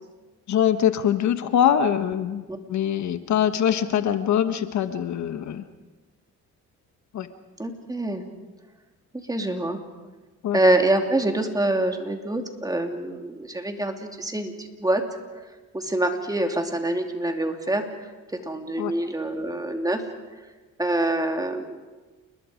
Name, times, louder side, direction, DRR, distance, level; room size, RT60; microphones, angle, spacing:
voice 1, 0.5-5.6 7.1-7.3 10.4-10.6 18.8-18.9, left 9 dB, 70° left, 10 dB, 1.3 m, -23 dB
voice 2, 7.6-8.2 9.3-9.8 10.5-15.0 15.7-17.8 18.4-20.0 20.8-21.8, right 1 dB, 10° right, 4 dB, 2.8 m, -25 dB
29.0 x 21.0 x 5.1 m, 1.2 s
cardioid pair, 90°, 30 cm